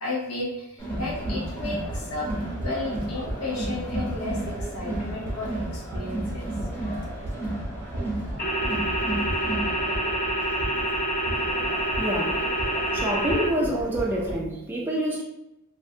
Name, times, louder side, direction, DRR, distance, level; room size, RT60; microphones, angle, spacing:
voice 1, 0.0-6.5 7.0-7.1, left 2 dB, 90° left, -4 dB, 0.6 m, -33 dB
Crowd, 0.8-14.4, right 1 dB, 10° left, 0.8 m, -34 dB
sound 1, 0.9-14.5, right 1 dB, 90° right, 0.5 m, -35 dB
sound 2, 8.4-13.5, right 1 dB, 45° left, 0.6 m, -27 dB
voice 2, 12.0-12.4 12.9-15.2, right 1 dB, 10° right, -4 dB, 0.4 m, -27 dB
2.4 x 2.2 x 2.7 m, 0.91 s
head